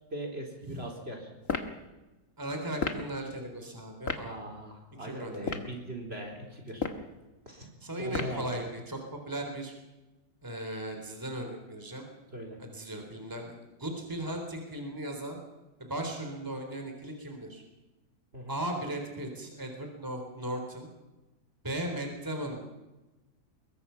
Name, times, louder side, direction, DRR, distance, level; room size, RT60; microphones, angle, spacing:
voice 1, 0.1-1.3 4.2-6.9 7.5-7.7 8.0-8.5 12.3-12.6 18.3-18.6, right 1 dB, 35° right, 2 dB, 4.2 m, -40 dB
sound 1, 1.4-1.7 2.8-3.1 4.1-4.3 5.3-5.7 6.7-7.1 8.1-8.5, left 5 dB, 45° left, 2.1 m, -32 dB
voice 2, 2.4-4.3 5.0-5.6 7.8-9.0 9.3-9.7 10.4-12.1 12.6-15.4 15.8-17.6 18.5-20.9 21.6-22.7, right 1 dB, 10° right, 3 dB, 3.8 m, -37 dB
24.0 x 22.0 x 5.8 m, 1.1 s
omnidirectional pair, 1.9 m